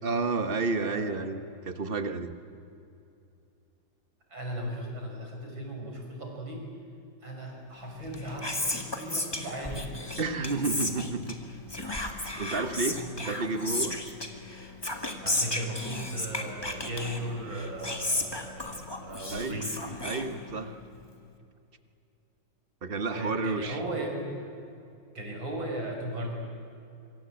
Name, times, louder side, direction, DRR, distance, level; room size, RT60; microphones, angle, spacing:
voice 1, 0.0-2.3 10.2-11.4 11.8-13.9 19.3-19.5 20.0-20.8 22.8-23.8, right 3 dB, 30° right, 9 dB, 1.2 m, -31 dB
voice 2, 0.8-1.2 4.3-6.6 7.2-9.8 12.9-13.1 15.2-19.7 23.1-24.4 25.1-26.3, right 1 dB, 65° right, 0 dB, 6.4 m, -37 dB
Whispering, 8.0-20.8, left 2 dB, 10° left, 1.8 m, -34 dB
26.0 x 24.0 x 8.9 m, 2.6 s
omnidirectional pair, 2.3 m